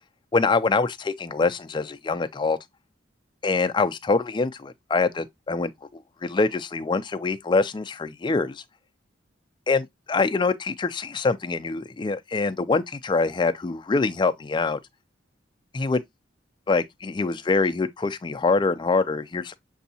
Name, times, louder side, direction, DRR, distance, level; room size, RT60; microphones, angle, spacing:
voice 1, 0.3-2.6 3.4-8.6 9.7-14.8 15.7-16.0 16.7-19.6, left 4 dB, 25° left, 0.3 m, -24 dB
6.9 x 2.7 x 2.7 m
head